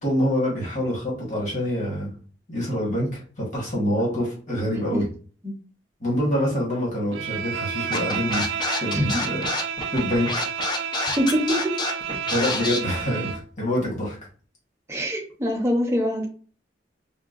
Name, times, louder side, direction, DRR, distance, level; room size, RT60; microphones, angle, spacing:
voice 1, 0.0-2.1 2.5-5.1 6.0-8.5 8.8-9.5 9.9-10.3 12.2-14.2, equal, 45° left, -5 dB, 1.4 m, -26 dB
Bowed string instrument, 7.1-13.5, right 7 dB, 85° right, 0.3 m, -31 dB
Scratching (performance technique), 7.9-12.8, left 3 dB, 25° left, 0.4 m, -27 dB
voice 2, 11.2-11.7 14.9-16.3, equal, 15° right, 0 dB, 0.7 m, -24 dB
3.8 x 2.2 x 2.5 m, 0.40 s
head